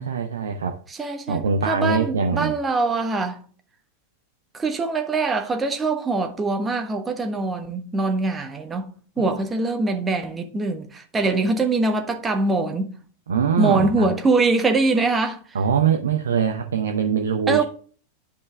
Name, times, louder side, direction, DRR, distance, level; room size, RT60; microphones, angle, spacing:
voice 1, 0.0-0.8 1.3-2.5 9.2-9.4 13.3-14.1 15.5-17.6, right 6 dB, 65° right, 0.8 m, -23 dB
voice 2, 1.0-3.4 4.5-8.9 9.2-12.9 13.6-15.4 17.5-17.6, right 3 dB, 15° right, 1.4 m, -23 dB
10.5 x 5.4 x 3.5 m
figure-of-eight pair, 90°, 0 cm